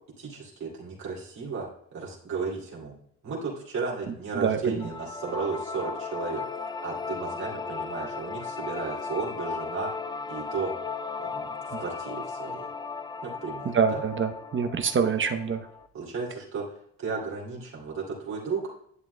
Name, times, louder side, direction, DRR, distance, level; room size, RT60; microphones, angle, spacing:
voice 1, 0.2-3.0 3.2-9.9 10.3-10.7 11.2-12.6 13.2-14.0 15.9-18.7, right 4 dB, 65° right, -5 dB, 2.6 m, -34 dB
sound 1, 4.8-15.9, left 4 dB, 15° left, 0.4 m, -36 dB
voice 2, 13.7-15.6, right 6 dB, 40° right, 7 dB, 0.8 m, -25 dB
11.0 x 7.4 x 2.2 m, 0.68 s
cardioid pair, 90°, 30 cm